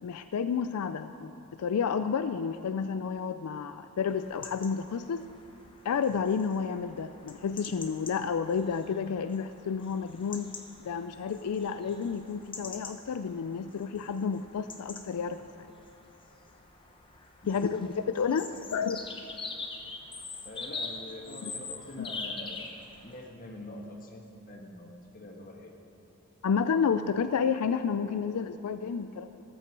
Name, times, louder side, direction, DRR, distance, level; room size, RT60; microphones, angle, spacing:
voice 1, 0.0-5.2 5.8-10.5 10.8-15.7 17.5-19.0 21.4-21.5 22.0-22.1 26.4-29.4, left 6 dB, 85° left, 11 dB, 0.4 m, -31 dB
sound 1, 4.1-23.2, left 4 dB, 20° left, 0.9 m, -44 dB
voice 2, 20.4-22.7 23.0-25.7, left 1 dB, 40° left, 1 dB, 1.5 m, -44 dB
14.5 x 13.0 x 4.6 m, 3.0 s
head